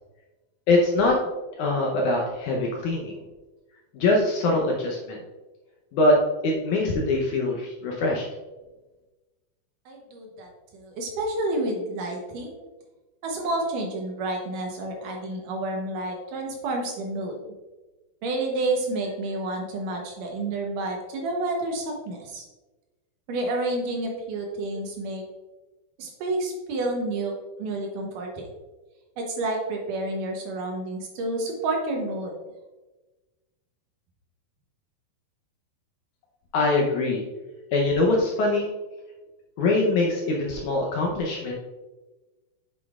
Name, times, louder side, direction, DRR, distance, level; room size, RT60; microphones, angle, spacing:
voice 1, 0.7-1.2 1.6-3.2 3.9-5.2 5.9-6.2 6.4-8.3 36.5-37.2 37.7-38.7 39.6-41.6, left 2 dB, 75° left, -1 dB, 1.9 m, -23 dB
voice 2, 9.9-12.6 13.2-17.4 18.2-22.4 23.3-25.2 26.0-27.3 27.6-28.5 29.2-32.4, right 2 dB, 70° right, 1 dB, 2.3 m, -29 dB
8.2 x 7.1 x 2.4 m, 1.2 s
omnidirectional pair, 4.3 m